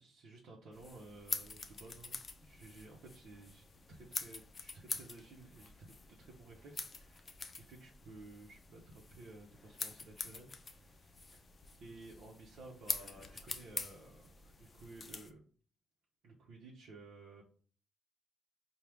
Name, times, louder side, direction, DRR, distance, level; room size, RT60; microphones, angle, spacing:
voice 1, 0.0-11.4 11.8-15.4 16.2-17.4, right 2 dB, 70° right, -2 dB, 0.9 m, -55 dB
sound 1, 0.7-15.3, left 4 dB, 35° left, 0.5 m, -46 dB
4.5 x 2.3 x 3.5 m, 0.43 s
cardioid pair, 90°, 0 cm